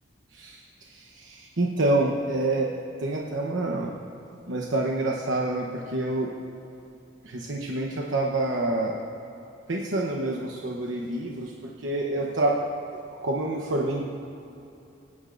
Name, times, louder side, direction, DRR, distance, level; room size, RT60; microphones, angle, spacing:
voice 1, 0.3-2.7 3.0-3.9 4.5-6.3 7.2-9.0 9.7-12.6 13.2-14.0, right 2 dB, 75° right, -2 dB, 1.0 m, -27 dB
25.5 x 9.8 x 2.6 m, 2.8 s
head